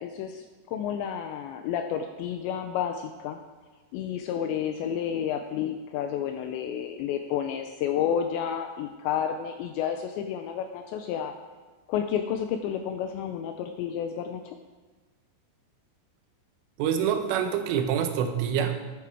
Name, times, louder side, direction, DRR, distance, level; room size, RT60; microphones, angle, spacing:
voice 1, 0.0-3.4 3.9-11.3 11.9-14.6, left 9 dB, 85° left, 6 dB, 2.6 m, -31 dB
voice 2, 16.8-18.8, right 8 dB, 80° right, 6 dB, 3.5 m, -26 dB
11.0 x 11.0 x 4.7 m, 1.3 s
omnidirectional pair, 5.7 m